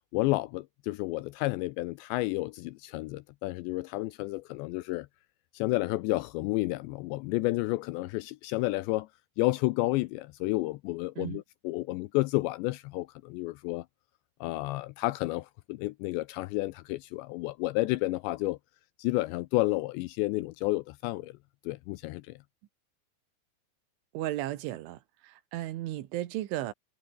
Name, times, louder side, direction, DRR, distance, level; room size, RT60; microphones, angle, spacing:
voice 1, 0.1-5.1 5.5-9.1 9.4-13.8 14.4-18.6 19.0-21.3 21.7-22.3, left 20 dB, 85° left, 2.6 m, -31 dB
voice 2, 24.2-25.0 25.2-26.7, right 14 dB, 80° right, 3.8 m, -34 dB
omnidirectional pair, 5.5 m